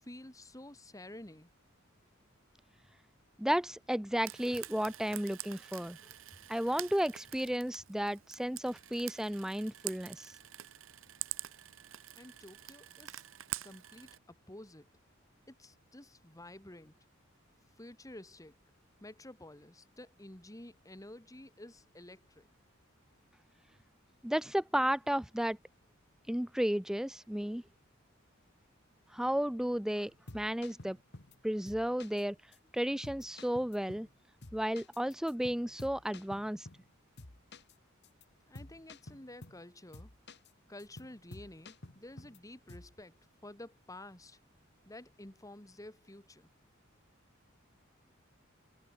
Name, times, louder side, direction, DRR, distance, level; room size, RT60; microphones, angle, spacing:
voice 1, 0.0-1.5 12.1-13.2 13.6-14.9 15.5-16.9 17.8-18.6 19.0-22.5 38.5-40.1 40.7-43.1 43.4-44.4 44.9-46.5, left 1 dB, 15° left, 1.9 m, -51 dB
voice 2, 3.4-6.0 6.5-10.3 24.2-25.6 26.3-27.6 29.1-31.0 31.4-32.4 32.7-34.1 34.5-36.7, equal, 5° right, 0.4 m, -33 dB
Frying (food), 4.2-14.2, right 14 dB, 70° right, 1.2 m, -46 dB
sound 1, 30.1-31.4 31.7-32.2 32.5-32.6 33.0-34.1 34.4-36.9 37.2-37.7 38.0-38.2 38.5-39.6 39.9-40.5 40.8-42.4 42.7-43.0, left 2 dB, 55° left, 2.1 m, -51 dB
head